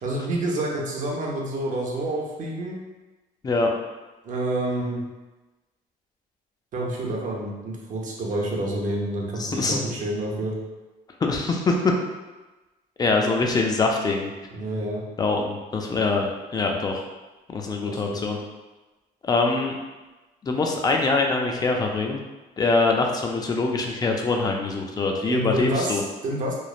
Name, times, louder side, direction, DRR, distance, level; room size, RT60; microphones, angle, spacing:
voice 1, 0.0-2.8 4.2-5.0 6.7-10.6 14.5-15.0 17.9-18.2 25.3-26.5, right 1 dB, 50° right, -2 dB, 0.6 m, -28 dB
voice 2, 9.4-9.8 11.2-11.9 13.0-14.3 15.2-17.0 17.5-18.4 19.2-19.7 20.4-22.2 22.6-26.0, left 3 dB, 25° left, 1 dB, 0.4 m, -23 dB
3.0 x 2.0 x 2.3 m, 1.1 s
cardioid pair, 110°, 17 cm